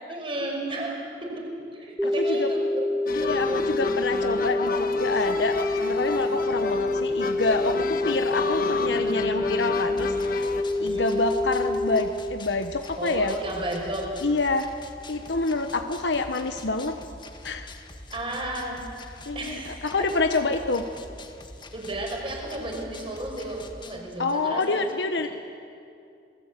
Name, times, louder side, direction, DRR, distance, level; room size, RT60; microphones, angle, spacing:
voice 1, 0.1-1.5 1.7-2.9 3.2-3.6 4.2-4.5 10.8-11.1 13.0-14.1 18.1-18.8 19.3-19.9 21.7-24.9, right 1 dB, 30° right, 0 dB, 5.5 m, -33 dB
voice 2, 2.0-2.5 3.1-10.5 10.8-13.4 14.2-14.7 15.1-17.0 17.4-17.7 19.3-20.9 24.2-25.3, left 3 dB, 80° left, 7 dB, 1.0 m, -27 dB
sound 1, 2.0-12.0, left 2 dB, ahead, 1.1 m, -26 dB
sound 2, 3.1-10.6, left 3 dB, 55° left, 1.4 m, -32 dB
sound 3, 10.0-24.0, left 2 dB, 25° left, 1.7 m, -44 dB
27.5 x 19.5 x 8.3 m, 2.5 s
head